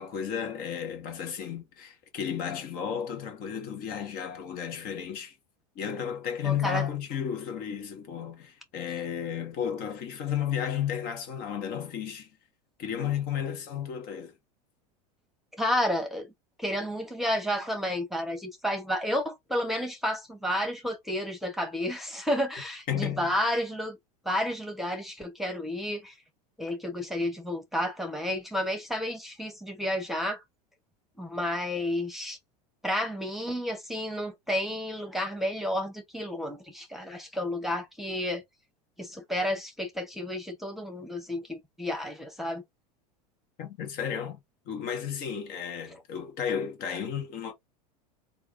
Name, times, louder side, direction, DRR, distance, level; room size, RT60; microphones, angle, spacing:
voice 1, 0.0-5.3 5.7-12.3 12.8-14.3 22.9-23.3 43.6-44.4 44.7-47.5, left 8 dB, 50° left, 1.5 m, -33 dB
voice 2, 6.4-6.9 15.6-16.3 16.6-24.0 24.2-26.1 26.6-30.4 31.2-32.4 32.8-38.4 39.0-42.6, left 1 dB, ahead, 1.3 m, -31 dB
3.6 x 2.5 x 3.5 m
hypercardioid pair, 95°, 20 cm